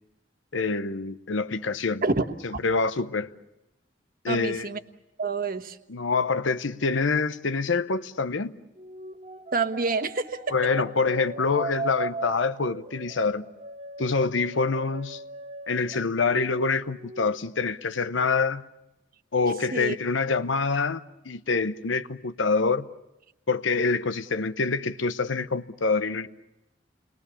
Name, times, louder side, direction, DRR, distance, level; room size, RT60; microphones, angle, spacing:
voice 1, 0.5-2.0 2.4-3.3 4.2-4.7 5.9-8.6 10.5-13.4 14.0-15.2 15.7-18.6 19.3-22.9 23.5-26.3, left 4 dB, 85° left, 0.9 m, -26 dB
voice 2, 2.0-2.6 4.3-4.8 5.2-5.8 9.5-10.5 19.7-20.0, right 3 dB, 50° right, 1.2 m, -28 dB
sound 1, 8.8-16.5 16.8-17.4, right 2 dB, 35° right, 0.8 m, -39 dB
29.5 x 22.5 x 7.0 m
head